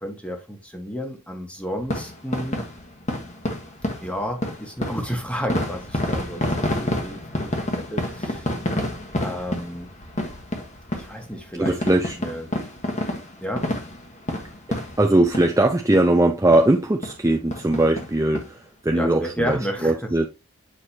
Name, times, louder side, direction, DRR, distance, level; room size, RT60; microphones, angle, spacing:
voice 1, 0.0-2.6 4.0-7.5 7.9-8.5 9.2-9.9 10.9-12.5 13.4-13.7 18.9-20.3, equal, 5° left, 1.3 m, -31 dB
sound 1, 1.8-15.7 15.9-16.1 16.5-16.6 17.0-17.2 17.5-18.5 18.9-19.0 19.2-19.3, left 1 dB, 30° left, 1.2 m, -29 dB
voice 2, 11.6-12.2 15.0-20.3, right 1 dB, 15° right, 0.5 m, -20 dB
8.2 x 4.8 x 2.8 m
head